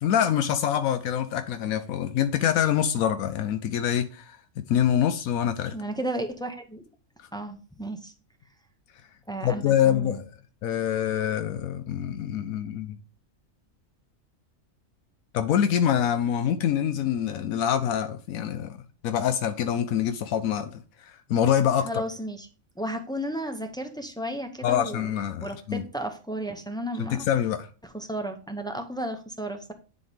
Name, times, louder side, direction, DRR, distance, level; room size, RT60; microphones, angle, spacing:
voice 1, 0.0-4.4 4.7-5.7 9.4-10.3 10.6-13.0 15.3-18.8 19.0-22.0 24.6-25.8 27.0-27.7, left 9 dB, 85° left, 1.1 m, -25 dB
voice 2, 5.7-6.8 7.3-8.1 9.3-10.2 21.8-22.5 22.8-25.1 25.4-27.2 27.8-29.7, right 1 dB, 5° left, 0.5 m, -33 dB
9.9 x 4.2 x 3.4 m
omnidirectional pair, 1.4 m